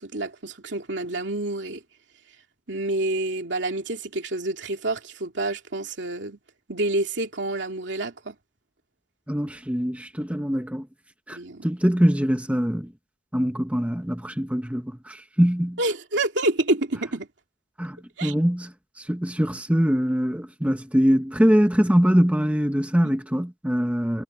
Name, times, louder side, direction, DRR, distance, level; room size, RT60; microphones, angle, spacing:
voice 1, 0.0-1.8 2.7-6.4 6.7-8.4 11.3-11.7 15.8-17.3 18.2-18.3 23.0-23.1, right 2 dB, 70° right, 2.8 m, -28 dB
voice 2, 9.3-10.9 11.3-12.9 13.3-15.8 17.8-18.7 19.0-24.2, equal, 5° right, 0.9 m, -23 dB
head